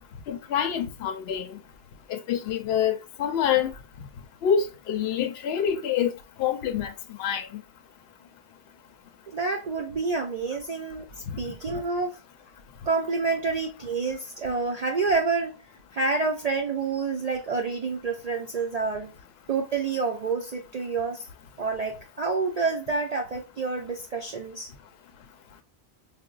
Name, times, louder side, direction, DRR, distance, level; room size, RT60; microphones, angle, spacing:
voice 1, 0.3-1.6 2.1-3.7 4.4-6.1 6.4-7.6 11.7-11.8, left 8 dB, 70° left, 0.8 m, -26 dB
voice 2, 9.3-11.1 11.4-12.2 12.8-15.7 15.9-19.1 19.5-21.3 21.6-24.7, right 4 dB, 55° right, 0.4 m, -28 dB
4.8 x 2.1 x 2.3 m
omnidirectional pair, 1.1 m